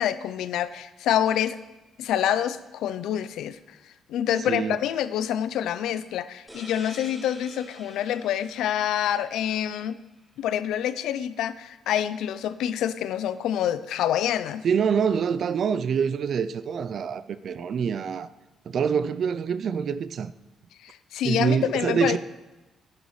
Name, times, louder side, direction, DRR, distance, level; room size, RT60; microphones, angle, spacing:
voice 1, 0.0-1.6 2.0-3.6 4.1-10.0 10.4-14.6 20.8-22.2, left 10 dB, 85° left, 0.5 m, -27 dB
voice 2, 4.5-4.8 14.6-18.3 18.7-20.3 21.2-22.2, right 7 dB, 60° right, 0.4 m, -25 dB
sound 1, 6.5-9.9, equal, 5° right, 2.2 m, -47 dB
11.0 x 10.5 x 3.2 m
cardioid pair, 90°, 0 cm